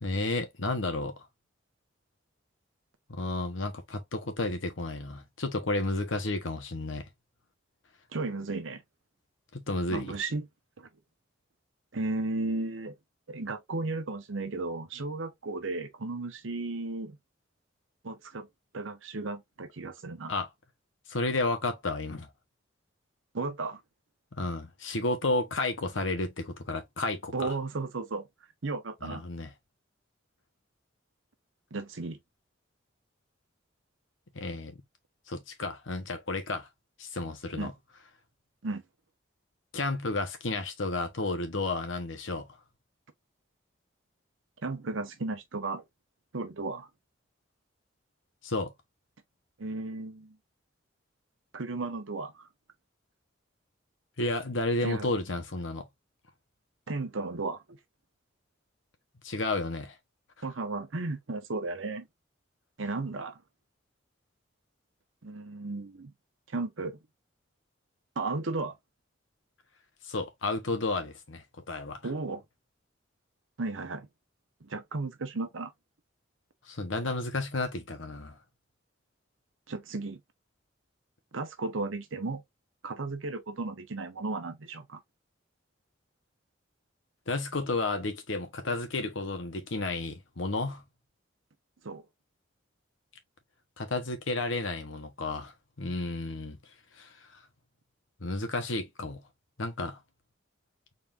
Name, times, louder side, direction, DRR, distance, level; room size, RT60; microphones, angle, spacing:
voice 1, 0.0-1.1 3.1-7.1 9.5-10.2 20.3-20.5 21.1-22.3 24.4-27.5 29.0-29.5 34.3-34.8 35.3-36.7 37.0-37.7 39.7-42.5 48.4-48.7 54.2-55.9 59.2-60.0 70.0-72.0 76.7-78.4 87.3-90.8 93.8-96.6 96.9-97.4 98.2-99.2 99.6-100.0, left 2 dB, 80° left, 1.1 m, -32 dB
voice 2, 8.1-8.8 9.9-10.5 10.8-10.9 11.9-12.9 13.3-17.2 18.0-18.5 18.7-20.3 23.3-23.8 27.3-28.3 28.6-29.2 31.7-32.2 37.5-37.7 38.6-38.8 44.6-45.8 46.3-46.9 49.6-50.4 51.5-52.4 54.8-55.1 56.9-57.8 60.4-62.1 62.8-63.4 65.2-66.1 66.5-67.0 68.2-68.8 72.0-72.4 73.6-74.1 74.6-75.7 79.7-80.2 81.3-82.4 82.8-85.0 91.8-92.0, right 3 dB, 85° right, 0.9 m, -34 dB
4.1 x 3.6 x 2.5 m
head